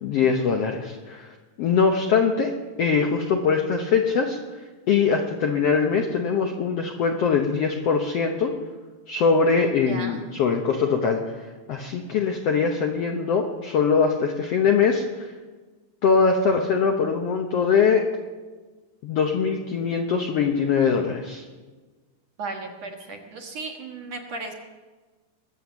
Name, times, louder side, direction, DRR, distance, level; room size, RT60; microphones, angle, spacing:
voice 1, 0.0-2.5 2.8-4.4 4.9-8.5 9.1-15.3 16.0-18.0 19.0-21.4, left 5 dB, 70° left, 3 dB, 1.5 m, -22 dB
voice 2, 9.9-10.2 22.4-24.5, right 3 dB, 55° right, 2 dB, 2.3 m, -35 dB
21.5 x 7.8 x 7.1 m, 1.3 s
omnidirectional pair, 4.0 m